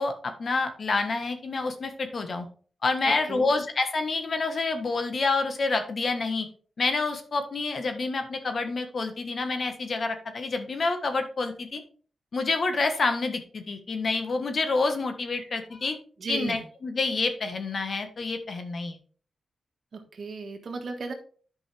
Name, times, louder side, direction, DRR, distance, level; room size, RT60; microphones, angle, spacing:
voice 1, 0.0-2.4 2.8-6.5 6.8-11.8 12.3-16.0 16.3-19.0, left 3 dB, 55° left, 7 dB, 1.3 m, -28 dB
voice 2, 3.0-3.5 15.4-15.5 16.2-16.6 19.9-21.1, right 4 dB, 65° right, 4 dB, 1.6 m, -35 dB
10.5 x 5.4 x 3.4 m, 0.42 s
cardioid pair, 70°, 0 cm